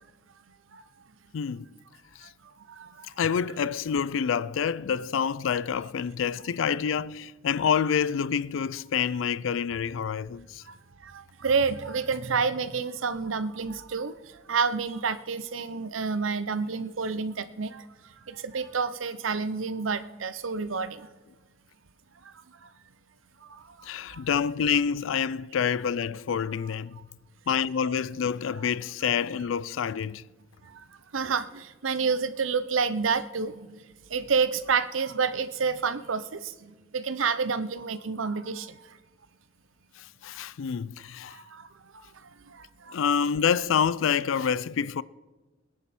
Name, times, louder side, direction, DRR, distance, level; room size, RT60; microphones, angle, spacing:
voice 1, 1.3-1.7 2.2-2.3 3.2-10.6 23.8-27.0 27.5-30.2 40.2-41.4 42.9-45.0, left 7 dB, 75° left, 0.4 m, -27 dB
voice 2, 11.0-14.1 14.5-17.8 18.3-21.1 31.1-33.8 34.1-38.8 41.3-41.7 42.9-43.0, right 5 dB, 90° right, 0.7 m, -29 dB
21.0 x 10.5 x 4.3 m
head